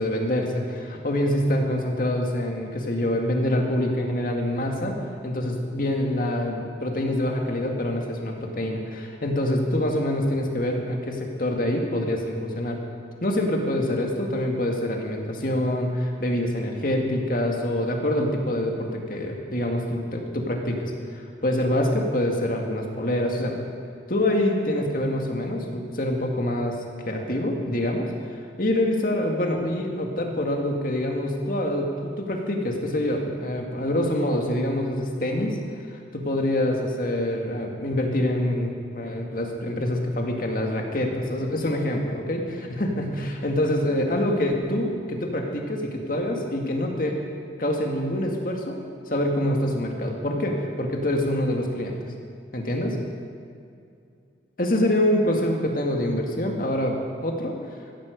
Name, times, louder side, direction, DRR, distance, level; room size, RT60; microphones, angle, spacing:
voice 1, 0.0-5.0 5.2-12.8 13.2-23.5 24.1-26.8 27.1-28.1 28.6-35.6 36.1-47.2 47.6-48.8 49.1-52.0 52.5-53.0 54.6-57.6, left 1 dB, 50° left, 1 dB, 2.1 m, -25 dB
15.5 x 15.0 x 5.3 m, 2.4 s
head